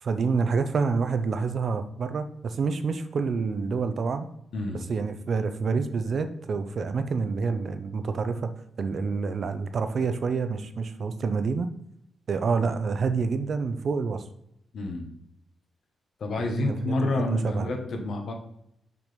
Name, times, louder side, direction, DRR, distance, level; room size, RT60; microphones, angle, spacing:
voice 1, 0.0-4.3 4.7-8.5 8.8-11.7 12.3-14.2 16.4-17.7, right 4 dB, 50° right, 9 dB, 0.7 m, -28 dB
voice 2, 4.5-4.8 14.7-15.1 16.2-18.3, left 2 dB, 60° left, 3 dB, 1.5 m, -29 dB
6.0 x 6.0 x 5.2 m, 0.77 s
wide cardioid pair, 140°, 0 cm